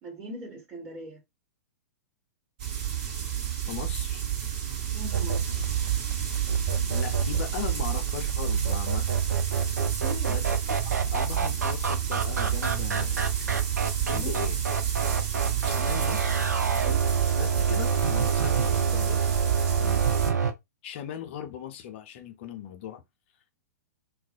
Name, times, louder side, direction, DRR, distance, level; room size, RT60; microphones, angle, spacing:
voice 1, 0.0-1.2 4.9-5.4 9.8-10.4 14.1-14.5 16.8-17.0 19.8-20.1, right 1 dB, 25° right, 1.0 m, -41 dB
sound 1, 2.6-20.3, right 10 dB, 45° right, 1.4 m, -30 dB
voice 2, 3.7-4.2 6.9-9.1 10.3-13.5 14.1-14.6 15.6-16.4 17.4-19.2 20.8-23.0, left 9 dB, 40° left, 0.5 m, -38 dB
sound 2, 5.1-20.5, right 6 dB, 70° right, 0.5 m, -28 dB
2.4 x 2.0 x 2.5 m
figure-of-eight pair, 110°, 9 cm